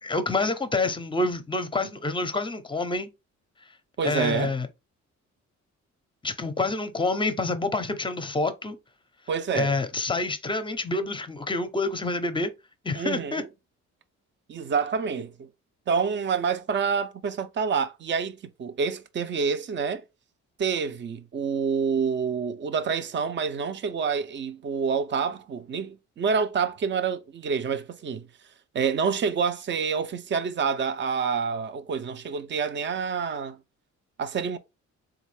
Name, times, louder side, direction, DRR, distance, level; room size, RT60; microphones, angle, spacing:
voice 1, 0.0-3.1 4.0-4.7 6.2-8.8 9.5-12.5 12.8-13.4, left 3 dB, 15° left, 0.6 m, -27 dB
voice 2, 4.0-4.5 9.3-9.8 12.9-13.5 14.5-15.5 15.9-20.0 20.6-28.3 28.7-33.6 34.2-34.6, right 6 dB, 40° right, 0.6 m, -27 dB
3.5 x 2.4 x 3.2 m
cardioid pair, 90°, 30 cm